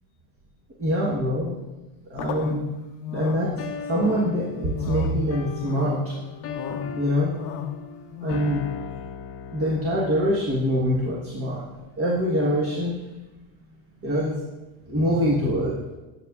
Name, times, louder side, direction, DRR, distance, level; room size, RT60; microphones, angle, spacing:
voice 1, 0.8-1.5 2.1-2.6 3.1-6.2 6.9-7.3 8.2-8.6 9.5-11.7 12.0-13.0 14.0-14.4 14.9-15.8, equal, 30° right, -3 dB, 1.3 m, -24 dB
sound 1, 2.1-8.4, left 8 dB, 90° left, 0.7 m, -35 dB
sound 2, 3.6-10.5, left 7 dB, 30° left, 0.6 m, -37 dB
9.7 x 6.7 x 2.4 m, 1.1 s
supercardioid pair, 110°, 45 cm